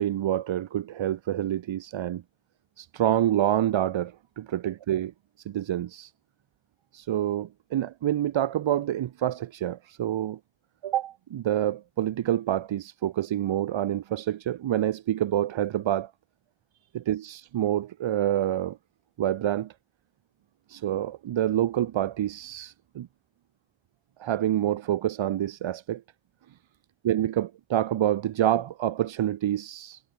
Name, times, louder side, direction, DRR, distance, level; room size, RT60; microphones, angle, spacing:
voice 1, 0.0-2.2 2.8-5.1 5.4-6.1 6.9-10.4 10.8-16.1 16.9-18.8 19.2-19.7 20.7-23.1 24.2-26.0 27.0-30.0, right 11 dB, 80° right, 4.4 m, -27 dB
cardioid pair, 75°, 45 cm